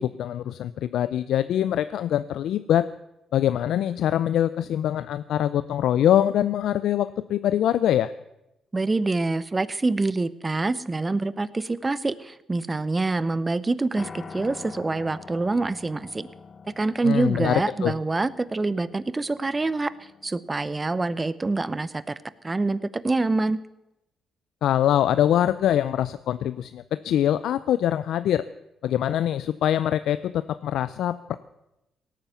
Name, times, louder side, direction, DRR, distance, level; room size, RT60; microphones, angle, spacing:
voice 1, 0.0-2.9 3.3-8.1 17.0-17.9 24.6-28.4 28.8-31.3, left 11 dB, 75° left, 14 dB, 0.4 m, -23 dB
voice 2, 8.7-16.3 16.8-19.9 20.2-22.2 22.4-23.6, right 3 dB, 20° right, 17 dB, 0.7 m, -26 dB
Piano, 14.0-22.2, left 5 dB, 40° left, 0.9 m, -46 dB
17.5 x 9.1 x 7.1 m, 0.91 s
cardioid pair, 90°, 0 cm